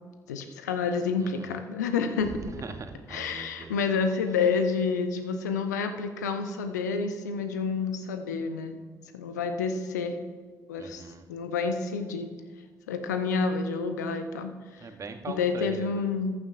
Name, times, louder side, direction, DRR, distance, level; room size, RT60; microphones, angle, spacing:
voice 1, 0.3-2.3 3.1-8.8 9.1-10.2 10.7-11.0 11.3-12.3 12.9-14.9 15.3-16.3, left 5 dB, 75° left, 8 dB, 0.7 m, -29 dB
voice 2, 1.2-1.6 2.5-3.7 10.8-11.2 14.8-16.1, right 4 dB, 35° right, 8 dB, 1.0 m, -41 dB
14.5 x 11.0 x 2.5 m, 1.5 s
figure-of-eight pair, 45°, 9 cm